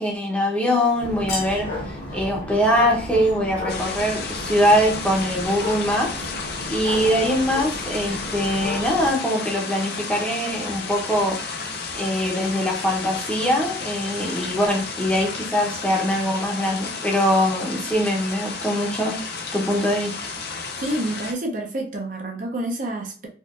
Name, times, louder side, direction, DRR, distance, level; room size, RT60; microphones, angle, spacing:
voice 1, 0.0-1.7 2.1-6.1 6.4-11.4 11.9-19.1 19.5-20.1, equal, 5° left, 0.7 m, -22 dB
sound 1, 1.0-9.1, left 1 dB, 80° left, 1.2 m, -33 dB
sound 2, 3.7-21.3, left 4 dB, 60° left, 0.6 m, -32 dB
voice 2, 20.8-23.3, right 1 dB, 45° right, 0.6 m, -28 dB
4.2 x 2.4 x 2.4 m
head